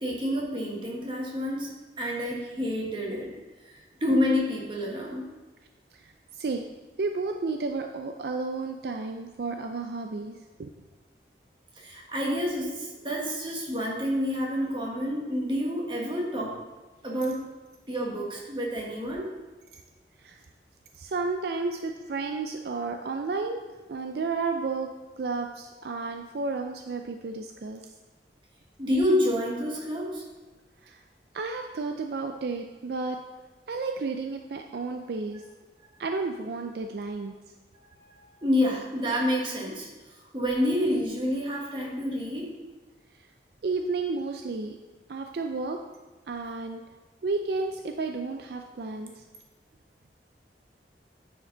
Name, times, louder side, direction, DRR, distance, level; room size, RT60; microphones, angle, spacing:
voice 1, 0.0-1.7 2.0-3.3 3.7-5.2 11.7-16.5 17.0-17.4 17.9-19.3 28.8-30.2 37.9-39.9 40.3-42.5, left 1 dB, 25° right, -3 dB, 1.5 m, -28 dB
voice 2, 5.9-6.6 7.0-10.7 20.2-20.4 20.9-23.6 23.9-24.9 25.2-27.8 30.8-31.0 31.3-33.2 33.7-35.4 36.0-37.3 43.2-43.3 43.6-44.8 45.1-45.8 46.3-46.8 47.2-49.2, right 3 dB, 65° right, 4 dB, 0.4 m, -32 dB
9.4 x 5.1 x 3.9 m, 1.2 s
head